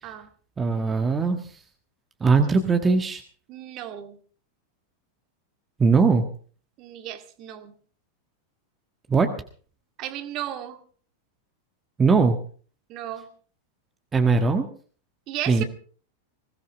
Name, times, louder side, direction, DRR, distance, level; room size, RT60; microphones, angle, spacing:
voice 1, 0.6-1.4 2.2-3.2 5.8-6.2 9.1-9.3 12.0-12.4 14.1-14.7 15.5-15.6, right 4 dB, 15° right, 6 dB, 1.5 m, -20 dB
voice 2, 3.5-4.2 6.8-7.7 10.0-10.8 12.9-13.3 15.3-15.6, right 12 dB, 40° right, 7 dB, 2.0 m, -34 dB
20.5 x 17.5 x 3.4 m, 0.43 s
figure-of-eight pair, 90°, 0 cm